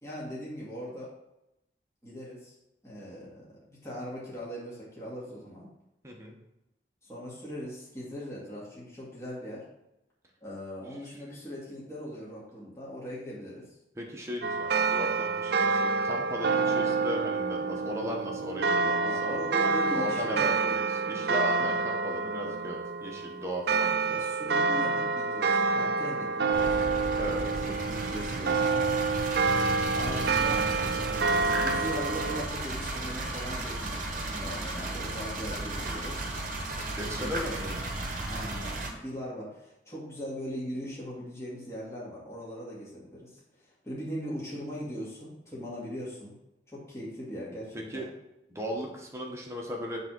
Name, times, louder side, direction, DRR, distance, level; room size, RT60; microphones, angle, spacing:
voice 1, 0.0-1.1 2.0-2.5 2.8-3.4 3.7-5.7 7.0-9.6 10.4-13.7 19.0-20.4 21.6-21.7 24.1-26.8 27.3-28.9 29.9-36.3 37.2-37.8 38.3-43.4 43.8-46.3 46.7-48.1, equal, 15° left, -7 dB, 2.2 m, -40 dB
voice 2, 13.9-19.4 19.9-24.2 24.8-24.9 27.2-27.4 37.0-37.7 47.7-48.0 48.5-50.0, equal, 15° right, -1 dB, 1.2 m, -36 dB
sound 1, 14.4-32.5, right 4 dB, 70° right, 0.4 m, -28 dB
sound 2, 26.5-38.9, right 2 dB, 45° right, 1.1 m, -34 dB
7.7 x 3.7 x 6.2 m, 0.88 s
head